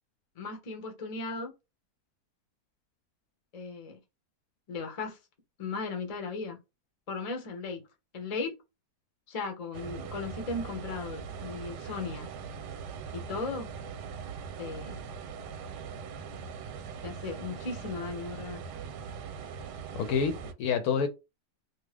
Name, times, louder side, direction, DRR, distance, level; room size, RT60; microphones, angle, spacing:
voice 1, 0.4-1.5 3.5-4.0 4.7-5.2 5.6-6.6 7.1-7.8 8.1-8.5 9.3-12.3 13.1-13.7 14.6-15.0 17.0-18.6, left 4 dB, 40° left, 0.5 m, -36 dB
sound 1, 9.7-20.5, right 6 dB, 90° right, 1.2 m, -41 dB
voice 2, 19.9-21.1, left 6 dB, 70° left, 1.0 m, -28 dB
2.7 x 2.4 x 3.2 m
omnidirectional pair, 1.7 m